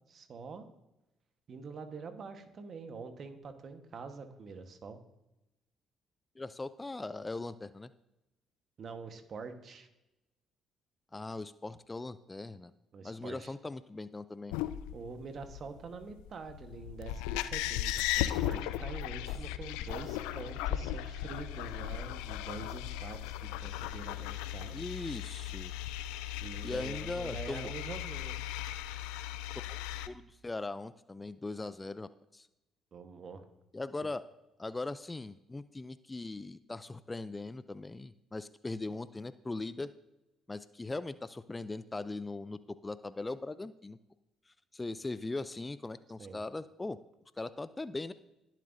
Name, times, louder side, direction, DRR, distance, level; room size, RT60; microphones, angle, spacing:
voice 1, 0.1-0.7 1.5-5.0 8.8-9.9 12.9-13.5 14.9-24.8 26.4-28.4 32.9-33.4 34.0-34.1 46.2-46.4, right 4 dB, 55° right, 8 dB, 1.3 m, -45 dB
voice 2, 6.4-7.9 11.1-12.7 13.0-14.5 24.7-25.7 26.6-27.7 29.7-32.5 33.7-34.2 34.6-39.9 40.5-44.0 44.5-47.0 47.4-48.1, left 2 dB, 20° left, 14 dB, 0.5 m, -40 dB
sound 1, 14.5-30.1, left 12 dB, 80° left, 0.4 m, -37 dB
20.0 x 7.4 x 2.7 m, 0.94 s
hypercardioid pair, 55°, 0 cm